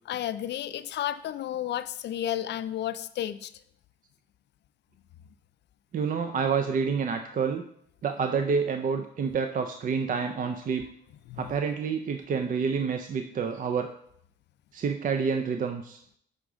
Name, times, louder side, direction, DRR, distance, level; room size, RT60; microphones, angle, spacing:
voice 1, 0.1-3.5 11.3-11.6, left 11 dB, 60° left, 14 dB, 0.4 m, -32 dB
voice 2, 5.9-7.6 8.0-10.9 11.4-13.9 14.7-16.0, right 6 dB, 45° right, 7 dB, 0.4 m, -28 dB
6.4 x 5.0 x 3.5 m, 0.68 s
cardioid pair, 90°, 20 cm